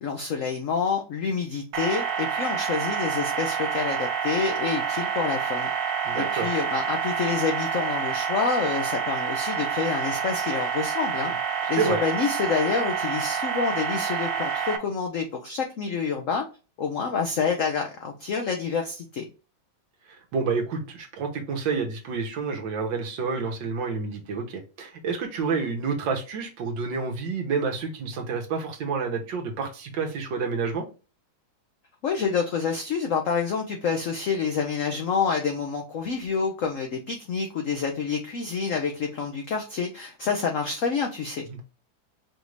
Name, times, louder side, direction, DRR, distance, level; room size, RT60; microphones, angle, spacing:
voice 1, 0.0-5.7 6.1-11.3 11.7-16.4 16.8-19.3 32.0-41.5, left 5 dB, 80° left, 3 dB, 0.7 m, -28 dB
sound 1, 1.7-14.8, right 7 dB, 90° right, 1.5 m, -28 dB
voice 2, 6.0-6.5 11.2-11.3 11.8-12.0 20.3-30.8 41.5-41.6, right 5 dB, 75° right, 2 dB, 1.7 m, -29 dB
5.1 x 2.5 x 3.1 m, 0.33 s
omnidirectional pair, 2.1 m